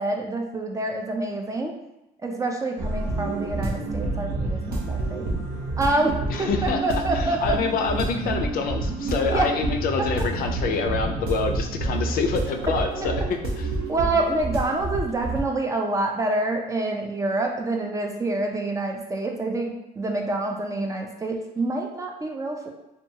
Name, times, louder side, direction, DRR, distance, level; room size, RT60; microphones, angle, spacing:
voice 1, 0.0-1.7 2.2-5.2 5.8-6.1 6.4-7.6 9.3-9.5 13.0-13.1 13.9-22.7, right 2 dB, 20° right, 2 dB, 0.3 m, -27 dB
sound 1, 2.8-15.4, right 2 dB, 65° right, 0.6 m, -28 dB
voice 2, 6.3-13.7, left 5 dB, 60° left, 4 dB, 0.4 m, -27 dB
2.6 x 2.2 x 2.7 m, 0.91 s
cardioid pair, 110°, 17 cm